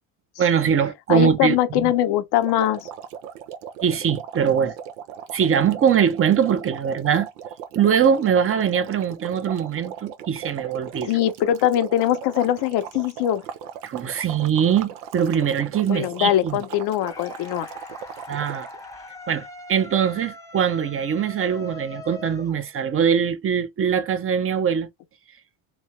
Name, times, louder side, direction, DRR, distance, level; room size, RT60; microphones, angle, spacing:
voice 1, 0.4-1.9 3.8-4.8 5.3-7.3 7.7-11.1 13.8-16.6 18.3-18.7 19.3-24.9, right 8 dB, 30° right, 0.8 m, -22 dB
voice 2, 1.1-2.9 11.1-13.4 15.9-17.7, left 12 dB, 55° left, 0.8 m, -22 dB
sound 1, 2.4-18.9, right 8 dB, 75° right, 0.8 m, -38 dB
sound 2, 17.0-23.1, left 2 dB, 5° left, 0.8 m, -42 dB
3.1 x 2.7 x 3.1 m
supercardioid pair, 85°, 46 cm